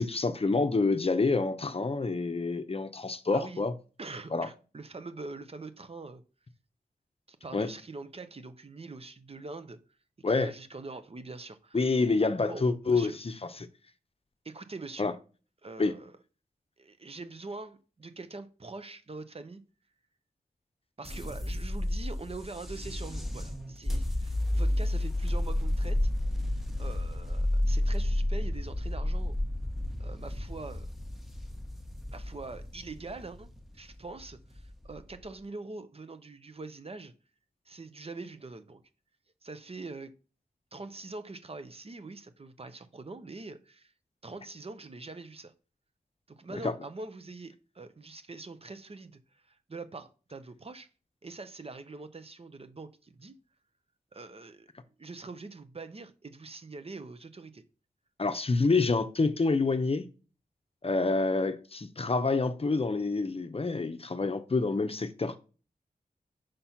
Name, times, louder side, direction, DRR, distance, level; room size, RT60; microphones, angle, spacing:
voice 1, 0.0-3.7 4.3-4.5 7.5-7.7 10.2-10.5 11.7-13.1 15.0-15.1 15.8-15.9 46.5-46.7 58.2-60.1 60.8-65.4, left 3 dB, 40° left, 0.7 m, -27 dB
voice 2, 3.3-3.6 4.0-6.2 7.3-9.8 10.3-11.9 12.5-13.2 14.4-15.1 15.6-16.2 16.8-19.6 21.0-26.1 26.5-29.4 30.0-30.9 32.1-37.1 37.7-38.8 39.4-40.1 40.7-43.9 44.2-45.5 46.3-50.9 51.2-53.4 54.1-54.7 55.0-57.6, right 3 dB, 40° right, 0.7 m, -44 dB
sound 1, 21.0-35.2, left 1 dB, ahead, 1.1 m, -31 dB
5.1 x 4.3 x 5.7 m
cardioid pair, 60°, 15 cm